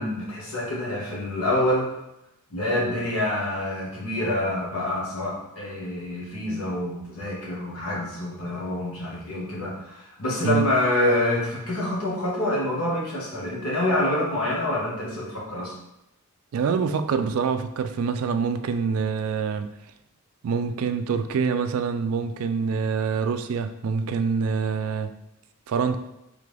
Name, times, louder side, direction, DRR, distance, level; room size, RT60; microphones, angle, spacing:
voice 1, 0.0-1.9 2.5-15.7, left 1 dB, 65° left, -4 dB, 1.3 m, -26 dB
voice 2, 16.5-19.7 20.4-25.1 25.7-26.0, right 5 dB, 65° right, 10 dB, 0.3 m, -25 dB
3.7 x 3.4 x 3.3 m, 0.87 s
head